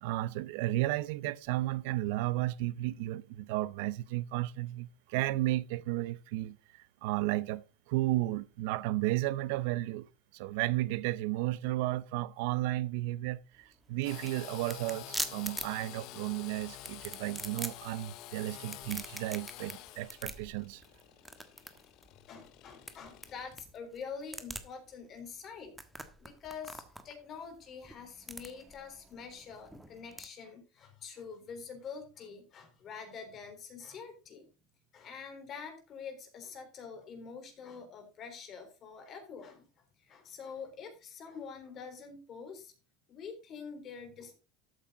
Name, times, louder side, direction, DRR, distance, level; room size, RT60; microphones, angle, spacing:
voice 1, 0.0-10.1 10.3-20.8, right 17 dB, 75° right, 0.7 m, -33 dB
sound 1, 13.5-30.3, right 1 dB, 5° right, 1.4 m, -45 dB
Engine / Sawing, 14.0-23.5, left 15 dB, 60° left, 0.9 m, -49 dB
voice 2, 22.1-25.7 26.2-34.5 34.9-39.6 40.0-42.7 43.1-44.4, left 6 dB, 40° left, 4.0 m, -46 dB
13.0 x 8.5 x 3.9 m
supercardioid pair, 135°, 0 cm